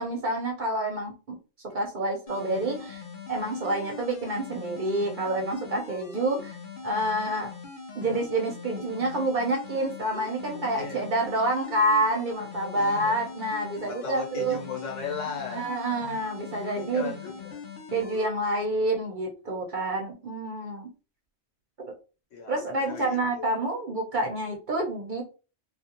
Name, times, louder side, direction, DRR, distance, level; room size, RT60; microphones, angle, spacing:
voice 1, 0.0-1.4 1.6-3.0 3.3-6.6 6.8-7.5 8.0-14.6 15.5-17.1 17.9-20.9 21.8-21.9 22.5-25.2, right 1 dB, 50° right, 1 dB, 0.6 m, -28 dB
sound 1, 2.3-18.3, left 5 dB, 55° left, 0.6 m, -42 dB
voice 2, 10.7-11.0 12.7-13.1 13.8-15.7 16.8-17.6 22.3-23.5, left 5 dB, 85° left, 1 dB, 1.3 m, -37 dB
2.4 x 2.3 x 2.8 m, 0.33 s
omnidirectional pair, 1.3 m